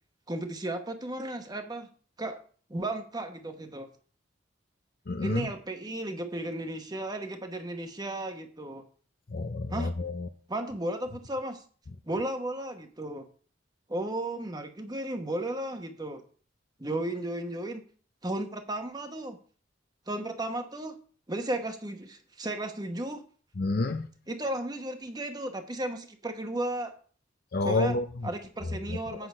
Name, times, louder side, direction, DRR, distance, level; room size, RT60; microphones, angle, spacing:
voice 1, 0.3-1.9 2.2-2.4 2.7-3.9 5.2-8.8 9.7-9.9 10.5-11.6 12.0-13.2 13.9-16.2 16.8-17.8 18.2-19.4 20.1-20.9 21.3-23.2 24.3-26.9 27.6-29.3, right 1 dB, 20° right, 1.0 m, -34 dB
voice 2, 5.1-5.5 9.3-10.3 23.6-24.1 27.5-28.0 28.9-29.0, left 3 dB, 50° left, 0.6 m, -28 dB
8.2 x 6.0 x 5.3 m
head